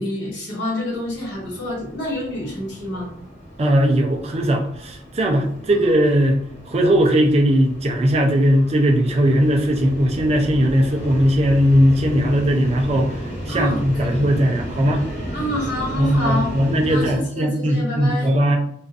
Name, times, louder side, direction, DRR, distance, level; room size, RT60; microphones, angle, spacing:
voice 1, 0.0-3.1 5.7-5.8 13.5-14.2 15.3-16.6 16.9-18.3, left 1 dB, 85° left, -4 dB, 1.3 m, -27 dB
sound 1, 0.9-17.1, equal, 40° left, 1.0 m, -33 dB
voice 2, 3.6-6.4 6.7-13.1 13.5-15.0 16.0-18.6, equal, 35° right, 1 dB, 0.4 m, -18 dB
2.5 x 2.3 x 2.5 m, 0.71 s
head